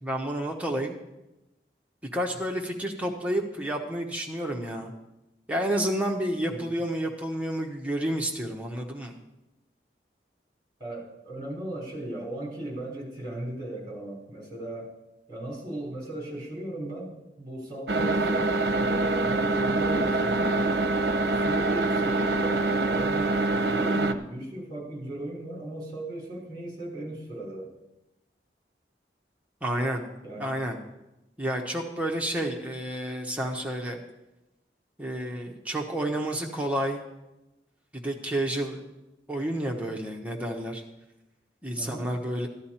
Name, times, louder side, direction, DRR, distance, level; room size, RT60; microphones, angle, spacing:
voice 1, 0.0-1.0 2.1-4.9 5.5-9.2 29.6-30.0 30.3-30.8 31.4-34.0 35.0-37.0 37.9-38.8 39.3-40.8 41.6-42.5, right 1 dB, 10° right, 0 dB, 1.0 m, -30 dB
voice 2, 10.8-14.9 15.3-20.6 21.3-27.7 30.2-30.6 41.8-42.1, right 1 dB, 25° right, -2 dB, 3.6 m, -37 dB
sound 1, 17.9-24.1, right 2 dB, 65° right, 0.7 m, -25 dB
14.0 x 10.5 x 4.3 m, 0.95 s
head